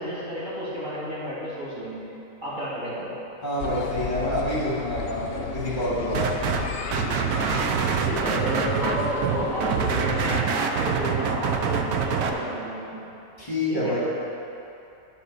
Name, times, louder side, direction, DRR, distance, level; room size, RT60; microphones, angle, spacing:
voice 1, 0.0-2.1 2.4-3.1 8.0-13.0 13.7-13.9, equal, 30° right, -10 dB, 2.2 m, -31 dB
voice 2, 3.4-6.3 13.4-14.0, left 1 dB, 35° left, -8 dB, 2.2 m, -27 dB
sound 1, 3.6-10.4, left 7 dB, 65° left, 0.6 m, -34 dB
sound 2, 6.1-6.6 6.9-12.3, right 7 dB, 85° right, 1.2 m, -25 dB
11.5 x 4.4 x 6.5 m, 2.8 s
omnidirectional pair, 1.5 m